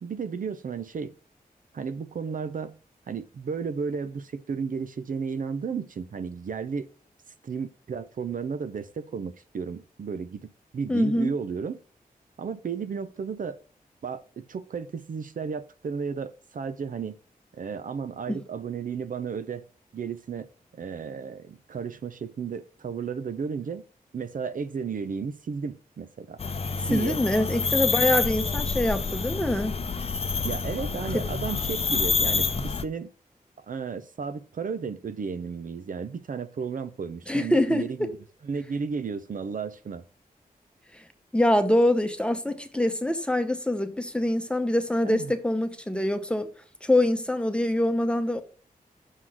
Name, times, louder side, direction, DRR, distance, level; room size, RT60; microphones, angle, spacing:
voice 1, 0.0-1.1 1.7-2.8 3.1-6.9 7.4-11.8 12.4-13.6 14.0-17.2 17.5-19.6 19.9-23.8 24.1-26.4 26.9-27.2 30.4-33.1 33.6-38.1 38.4-40.0 45.0-45.3, right 5 dB, 60° right, 0.6 m, -33 dB
voice 2, 10.9-11.3 18.3-18.4 26.9-29.8 31.1-31.2 37.3-38.1 40.9-41.0 41.3-46.5 46.8-48.4, left 1 dB, 5° left, 0.9 m, -24 dB
sound 1, 26.4-32.8, left 4 dB, 40° left, 0.6 m, -27 dB
6.4 x 3.8 x 5.9 m
cardioid pair, 70°, 15 cm